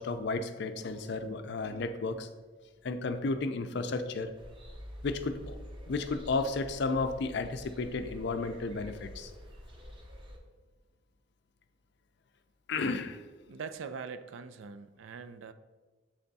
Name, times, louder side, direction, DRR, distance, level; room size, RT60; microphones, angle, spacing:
voice 1, 0.0-2.3 2.8-4.3 5.0-5.6 5.9-9.3 12.7-13.2, left 3 dB, 60° left, 9 dB, 0.4 m, -33 dB
sound 1, 4.3-10.4, equal, 25° right, 0.7 m, -47 dB
voice 2, 13.5-15.5, right 5 dB, 80° right, 11 dB, 0.4 m, -42 dB
7.6 x 3.5 x 4.0 m, 1.3 s
head